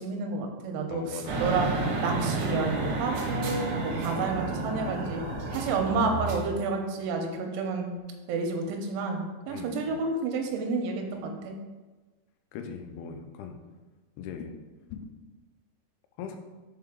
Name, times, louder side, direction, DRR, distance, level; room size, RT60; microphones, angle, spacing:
voice 1, 0.0-1.7 2.0-5.2 5.5-7.9 8.3-9.2 9.5-11.6, right 4 dB, 85° right, 3 dB, 2.9 m, -30 dB
voice 2, 0.9-1.4 3.8-4.0 9.5-10.0 12.5-13.6 14.2-14.5 14.9-15.1 16.2-16.4, left 6 dB, 80° left, 6 dB, 2.4 m, -40 dB
sound 1, 1.3-6.4, right 3 dB, 70° right, 2.0 m, -30 dB
6.7 x 4.5 x 3.6 m, 1.2 s
omnidirectional pair, 4.8 m